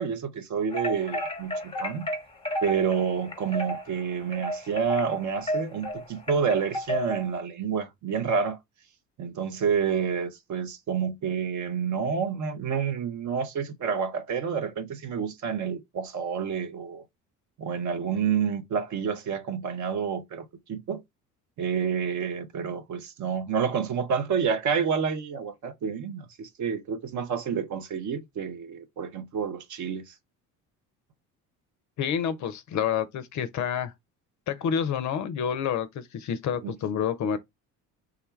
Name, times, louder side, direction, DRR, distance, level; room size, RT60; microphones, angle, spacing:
voice 1, 0.0-2.1 2.6-8.6 9.2-17.0 17.6-21.0 21.6-30.1 36.6-36.8, right 6 dB, 40° right, 0.8 m, -29 dB
sound 1, 0.7-7.3, equal, 10° left, 0.9 m, -33 dB
voice 2, 32.0-33.9 34.5-37.4, left 8 dB, 40° left, 0.5 m, -28 dB
3.6 x 2.2 x 3.1 m
figure-of-eight pair, 55°, 45 cm